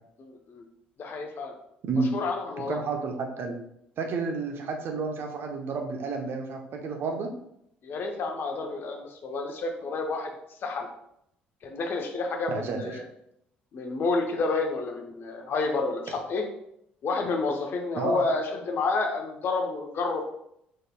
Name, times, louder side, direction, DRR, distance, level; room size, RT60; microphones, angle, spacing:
voice 1, 0.2-0.6 1.0-1.5 2.1-2.8 7.8-10.3 10.6-10.9 11.6-13.0 13.7-16.5 17.0-20.2, left 3 dB, 45° left, 3 dB, 0.7 m, -29 dB
voice 2, 2.6-3.6 4.0-7.3 12.5-13.0 17.9-18.2, right 4 dB, 50° right, 3 dB, 0.8 m, -30 dB
5.1 x 4.0 x 2.3 m, 0.76 s
figure-of-eight pair, 50°, 5 cm